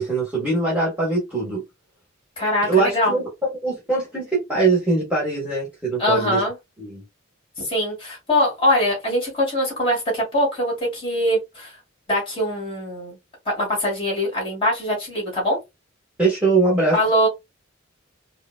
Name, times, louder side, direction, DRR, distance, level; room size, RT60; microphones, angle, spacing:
voice 1, 0.0-1.6 2.6-6.4 6.8-7.0 16.2-17.0, right 3 dB, 5° right, 1.5 m, -22 dB
voice 2, 2.4-3.2 6.0-6.5 7.6-11.7 12.1-13.2 13.5-15.6 16.9-17.3, left 1 dB, 25° left, 2.4 m, -22 dB
4.8 x 2.2 x 2.3 m
head